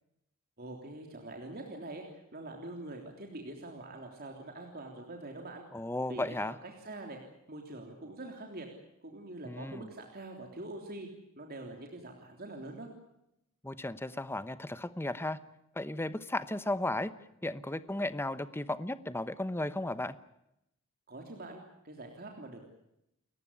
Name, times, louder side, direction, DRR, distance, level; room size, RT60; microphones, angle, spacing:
voice 1, 0.6-5.6 6.1-7.2 7.5-8.7 9.0-11.1 11.4-12.9 21.1-22.7, right 2 dB, 45° right, 2 dB, 3.4 m, -44 dB
voice 2, 5.7-6.6 9.4-9.9 13.6-15.4 15.7-17.1 17.4-20.2, left 1 dB, 10° left, 13 dB, 0.9 m, -35 dB
30.0 x 14.5 x 9.9 m, 0.83 s
head